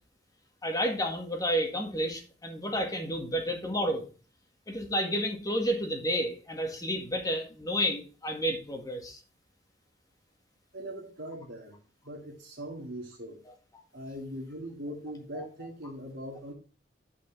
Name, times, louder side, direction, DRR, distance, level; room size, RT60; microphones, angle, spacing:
voice 1, 0.6-4.0 4.7-9.2 13.5-13.6 15.3-15.4, equal, 20° left, 3 dB, 1.8 m, -31 dB
voice 2, 10.7-11.8 12.0-13.4 13.9-16.5, equal, 70° right, -5 dB, 2.1 m, -40 dB
9.6 x 5.3 x 3.9 m, 0.37 s
head